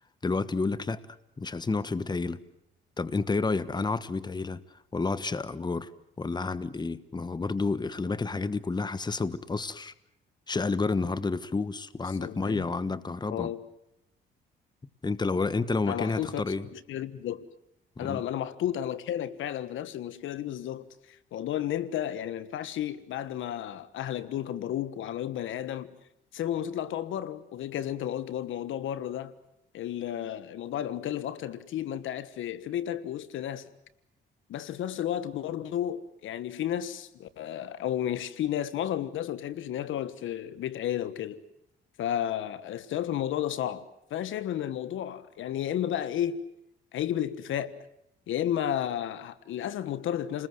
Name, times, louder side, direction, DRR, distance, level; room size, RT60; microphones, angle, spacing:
voice 1, 0.2-1.0 1.4-2.4 3.0-4.6 4.9-5.9 6.2-9.9 10.5-13.5 15.0-16.7 18.0-18.2, left 3 dB, 20° left, 1.3 m, -30 dB
voice 2, 12.1-12.7 13.3-13.6 15.9-16.4 16.7-17.4 18.0-26.0 26.3-29.3 29.7-33.7 34.5-41.4 42.0-46.4 46.9-47.7 48.3-50.5, left 11 dB, 80° left, 1.4 m, -32 dB
29.5 x 20.5 x 7.9 m
cardioid pair, 90°, 20 cm